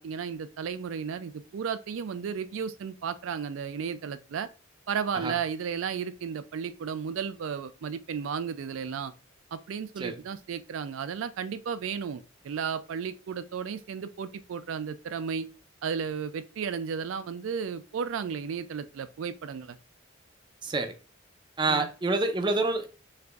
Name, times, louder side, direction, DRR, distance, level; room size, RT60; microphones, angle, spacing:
voice 1, 0.0-4.5 4.9-9.1 9.5-15.5 15.8-19.8 21.7-21.9, right 6 dB, 80° right, 0.4 m, -34 dB
voice 2, 20.6-20.9 21.6-22.9, right 3 dB, 25° right, 0.5 m, -27 dB
6.5 x 2.5 x 2.3 m
head